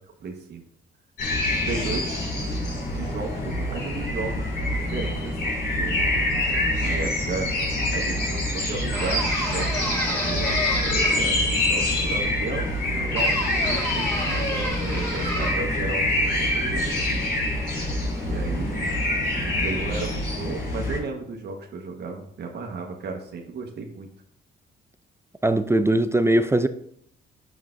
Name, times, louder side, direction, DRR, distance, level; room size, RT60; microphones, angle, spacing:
voice 1, 0.2-0.6 1.6-2.1 2.8-6.0 6.8-7.5 7.9-17.2 18.2-18.9 19.3-24.1, right 4 dB, 55° right, 1.3 m, -34 dB
sound 1, 1.2-21.0, left 1 dB, 60° left, 3.1 m, -26 dB
sound 2, 8.9-11.5 13.1-15.8, equal, 15° left, 3.4 m, -29 dB
voice 2, 25.4-26.7, right 1 dB, 15° right, 0.5 m, -20 dB
9.2 x 7.2 x 2.6 m
cardioid pair, 90°, 20 cm